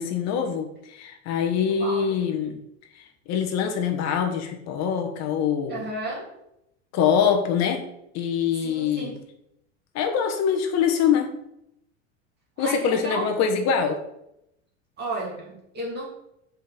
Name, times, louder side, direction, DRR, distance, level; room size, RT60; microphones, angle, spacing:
voice 1, 0.0-2.6 2.9-5.8 6.9-7.8 8.1-9.2 9.9-11.3 12.6-14.0, left 7 dB, 50° left, 4 dB, 1.2 m, -24 dB
voice 2, 5.7-6.3 8.6-9.2 12.6-13.4 15.0-16.1, right 2 dB, 30° right, -3 dB, 2.7 m, -33 dB
5.4 x 5.2 x 6.0 m, 0.81 s
supercardioid pair, 110°, 34 cm